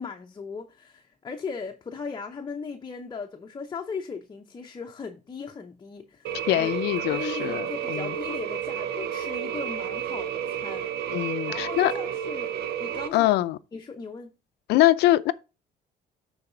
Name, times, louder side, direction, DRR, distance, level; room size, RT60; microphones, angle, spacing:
voice 1, 0.0-10.9 11.5-12.5 12.8-13.3 13.7-14.3, left 5 dB, 25° left, 0.8 m, -37 dB
sound 1, 6.2-13.1, right 9 dB, 70° right, 0.9 m, -31 dB
voice 2, 6.5-8.1 11.1-11.9 13.1-13.6 14.7-15.3, left 15 dB, 80° left, 0.5 m, -23 dB
10.5 x 4.1 x 3.9 m
cardioid pair, 110°, 17 cm